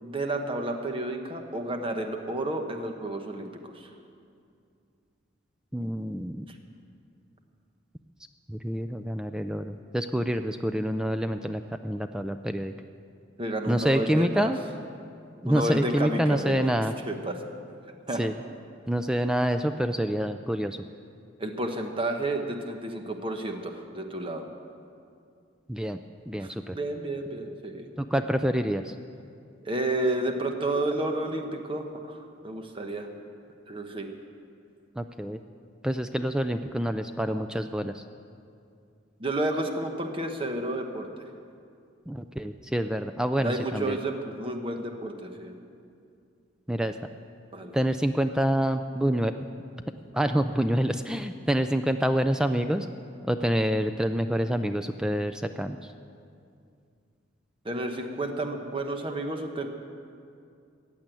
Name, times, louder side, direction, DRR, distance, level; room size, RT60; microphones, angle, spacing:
voice 1, 0.0-3.9 6.5-6.6 13.4-14.5 15.5-16.6 17.1-17.4 18.1-18.3 21.4-24.4 26.4-27.9 29.6-33.1 33.7-34.1 39.2-41.2 43.4-45.6 47.5-47.8 57.6-59.7, right 1 dB, 30° right, 4 dB, 1.0 m, -31 dB
voice 2, 5.7-6.5 8.5-12.7 13.7-14.6 15.4-16.9 18.2-18.4 18.9-20.8 25.7-26.0 26.3-26.8 28.0-28.9 35.0-35.4 35.8-38.0 42.1-44.0 46.7-46.9 47.7-49.3 50.1-52.9 53.3-55.8, equal, 5° right, 8 dB, 0.3 m, -27 dB
15.0 x 8.5 x 9.1 m, 2.4 s
head